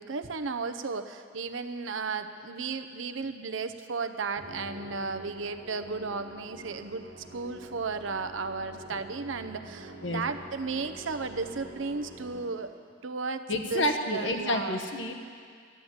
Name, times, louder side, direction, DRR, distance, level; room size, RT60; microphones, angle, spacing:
voice 1, 0.0-7.1 7.3-12.7 13.0-14.8, right 4 dB, 80° right, 9 dB, 0.7 m, -34 dB
Musical instrument, 4.4-12.9, right 1 dB, 65° right, 1.6 m, -47 dB
voice 2, 13.5-15.1, left 1 dB, 70° left, 4 dB, 1.2 m, -29 dB
13.0 x 9.8 x 7.9 m, 2.1 s
head